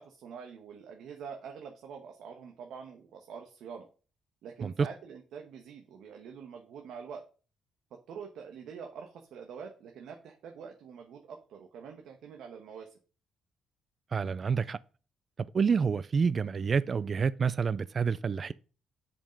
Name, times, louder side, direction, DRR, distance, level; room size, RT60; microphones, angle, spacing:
voice 1, 0.0-3.9 4.4-7.2 8.1-12.9, right 6 dB, 80° right, 1.2 m, -45 dB
voice 2, 14.1-14.8 15.4-18.5, right 5 dB, 40° right, 0.3 m, -28 dB
7.4 x 5.2 x 5.2 m
cardioid pair, 90°, 0 cm